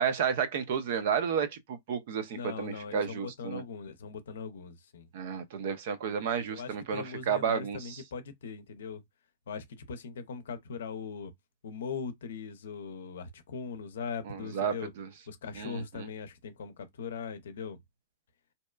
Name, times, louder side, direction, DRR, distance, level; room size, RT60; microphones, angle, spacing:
voice 1, 0.0-3.6 5.1-8.0 14.3-15.1 15.6-16.1, right 7 dB, 60° right, 0.5 m, -32 dB
voice 2, 2.3-5.1 6.5-9.0 9.5-11.3 11.6-14.9 15.3-17.8, left 5 dB, 75° left, 0.5 m, -40 dB
2.7 x 2.2 x 2.2 m
hypercardioid pair, 120°, 0 cm